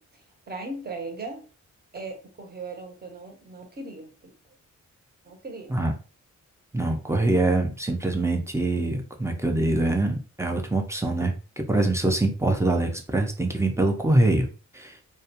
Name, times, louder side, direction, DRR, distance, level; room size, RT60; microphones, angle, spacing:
voice 1, 0.0-1.4 1.9-4.3 5.2-5.8, right 3 dB, 30° right, 3 dB, 0.8 m, -38 dB
voice 2, 6.7-14.5 14.7-15.0, right 2 dB, 10° right, 3 dB, 0.5 m, -24 dB
2.3 x 2.2 x 2.8 m, 0.35 s
cardioid pair, 95°, 31 cm